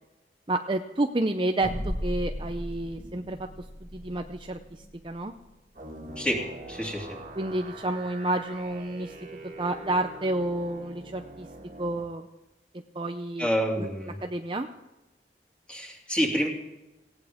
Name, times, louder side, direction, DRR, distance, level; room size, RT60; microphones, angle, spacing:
voice 1, 0.5-3.5 3.8-5.3 7.3-9.1 9.6-11.5 11.8-12.3 12.9-13.5 14.2-14.7, right 1 dB, 30° right, 6 dB, 0.6 m, -30 dB
sound 1, 1.6-6.4, equal, 35° left, 7.3 m, -37 dB
sound 2, 5.7-12.0, right 2 dB, 45° right, 2.0 m, -44 dB
voice 2, 6.2-7.2 13.4-14.2 15.7-16.5, equal, 5° left, 0 dB, 2.6 m, -28 dB
18.5 x 16.5 x 3.6 m, 1.0 s
head